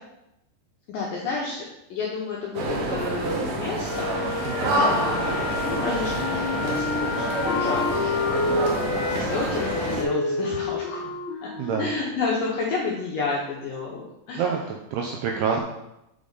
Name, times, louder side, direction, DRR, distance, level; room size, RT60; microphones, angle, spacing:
voice 1, 0.9-11.5 11.8-14.7, left 4 dB, 85° left, -3 dB, 2.0 m, -31 dB
sound 1, 2.5-10.0, right 2 dB, 70° right, 1.8 m, -27 dB
Wind instrument woodwind instrument, 3.8-8.7, left 5 dB, 45° left, 2.0 m, -32 dB
voice 2, 4.5-4.8 5.0-5.2 10.5-10.6 11.6-11.9 14.3-15.6, right 6 dB, 85° right, 1 dB, 2.3 m, -27 dB
Wind instrument woodwind instrument 2, 6.1-13.0, left 3 dB, 65° left, 1.6 m, -29 dB
8.6 x 5.2 x 4.0 m, 0.89 s
omnidirectional pair, 5.2 m